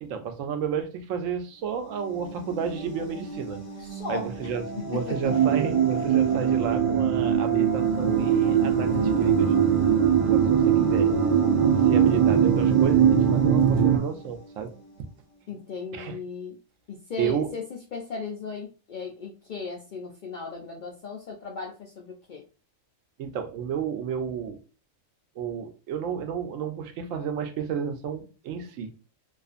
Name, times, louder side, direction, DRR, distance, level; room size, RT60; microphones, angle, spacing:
voice 1, 0.0-3.6 4.1-9.5 10.3-11.2 11.8-14.8 15.9-16.2 17.2-17.5 23.2-24.6 25.4-28.9, right 7 dB, 75° right, 0.9 m, -31 dB
sound 1, 1.6-15.2, right 2 dB, 20° left, 0.7 m, -38 dB
voice 2, 3.8-4.5 4.9-5.2 15.5-16.6 16.9-22.4, left 5 dB, 80° left, 0.4 m, -37 dB
sound 2, 5.2-14.0, right 8 dB, 55° right, 0.6 m, -21 dB
2.4 x 2.4 x 2.4 m
omnidirectional pair, 1.4 m